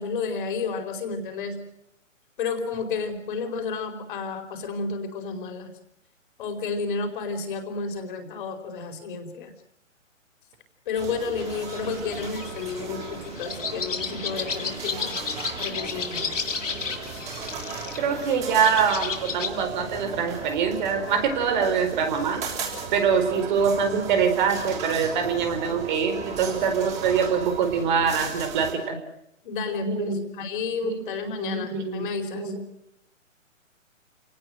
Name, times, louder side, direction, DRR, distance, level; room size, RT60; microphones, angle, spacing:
voice 1, 0.0-1.6 2.4-5.7 6.4-9.5 10.9-15.2 15.6-16.3 23.5-23.7 29.4-32.5, left 5 dB, 40° left, 5 dB, 4.7 m, -31 dB
sound 1, 11.0-28.7, right 5 dB, 15° right, 7.1 m, -37 dB
sound 2, 11.4-19.5, left 5 dB, 70° left, 5.5 m, -33 dB
voice 2, 18.0-22.4 22.9-29.0 29.8-30.4 30.8-32.1 32.3-32.6, right 6 dB, 35° right, 8 dB, 4.5 m, -24 dB
29.0 x 19.0 x 7.9 m, 0.78 s
hypercardioid pair, 145°, 39 cm